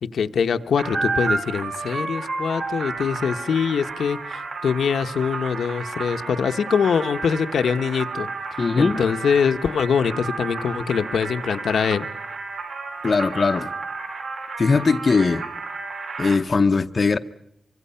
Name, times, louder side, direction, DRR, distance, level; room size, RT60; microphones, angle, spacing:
voice 1, 0.0-8.3 8.8-12.1, left 6 dB, 75° left, 1.0 m, -23 dB
sound 1, 0.8-16.4, right 4 dB, 60° right, 4.8 m, -31 dB
voice 2, 8.6-9.0 13.0-13.7 14.6-15.4 16.2-17.2, left 4 dB, 35° left, 0.8 m, -20 dB
25.0 x 24.5 x 5.7 m
wide cardioid pair, 170°, 0 cm